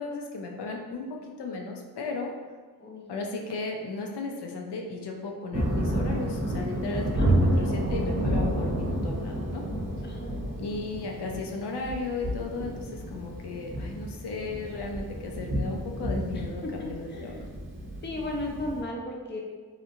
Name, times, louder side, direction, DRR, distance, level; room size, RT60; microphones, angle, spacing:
voice 1, 0.0-2.3 3.1-9.6 10.6-17.3, left 3 dB, 85° left, 1 dB, 0.5 m, -35 dB
Thunder, 5.5-18.8, right 1 dB, 30° right, 0.6 m, -30 dB
voice 2, 7.2-7.8 10.0-10.4 16.3-17.4 18.0-19.4, left 1 dB, 30° left, 0 dB, 0.5 m, -35 dB
2.9 x 2.4 x 2.6 m, 1.4 s
cardioid pair, 60°, 39 cm